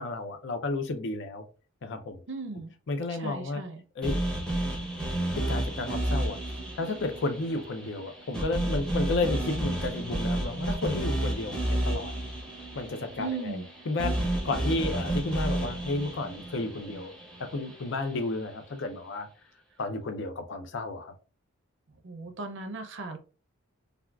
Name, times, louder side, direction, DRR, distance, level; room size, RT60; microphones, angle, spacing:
voice 1, 0.0-1.4 1.8-2.2 2.9-3.6 4.0-4.2 5.3-6.4 6.8-12.2 12.8-17.1 17.4-19.3 19.8-21.1, left 2 dB, 55° left, 0.4 m, -32 dB
voice 2, 2.3-2.7 3.1-3.8 13.2-13.6 22.0-23.2, right 3 dB, 60° right, 0.5 m, -37 dB
sound 1, 4.0-18.2, right 1 dB, 5° left, 0.6 m, -31 dB
3.4 x 2.3 x 2.2 m
head